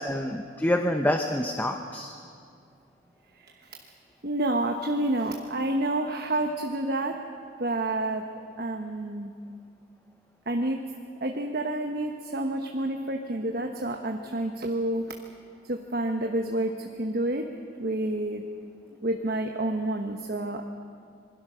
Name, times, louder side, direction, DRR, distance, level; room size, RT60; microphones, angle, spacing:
voice 1, 0.0-2.1, left 1 dB, 10° left, 5 dB, 0.8 m, -27 dB
voice 2, 3.3-3.9 4.2-7.2 7.6-8.2 8.6-9.3 10.5-10.8 11.2-15.2 15.6-17.5 17.8-18.4 19.0-20.7, right 1 dB, 50° right, 4 dB, 1.1 m, -29 dB
26.5 x 21.5 x 6.3 m, 2.3 s
head